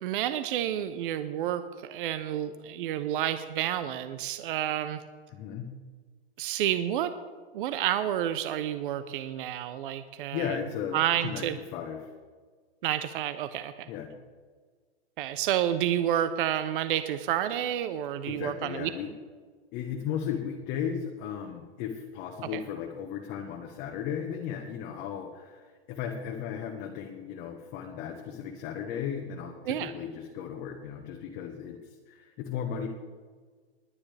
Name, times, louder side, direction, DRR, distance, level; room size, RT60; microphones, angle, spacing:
voice 1, 0.0-5.0 6.4-7.1 7.5-10.6 10.9-11.6 12.8-13.9 15.2-18.9 22.5-22.6 29.6-29.9, right 11 dB, 55° right, 11 dB, 0.8 m, -30 dB
voice 2, 5.3-5.7 10.3-12.1 13.9-14.1 18.2-19.1 19.7-32.9, left 8 dB, 30° left, 2 dB, 1.2 m, -36 dB
20.5 x 9.7 x 3.4 m, 1.5 s
hypercardioid pair, 150°, 32 cm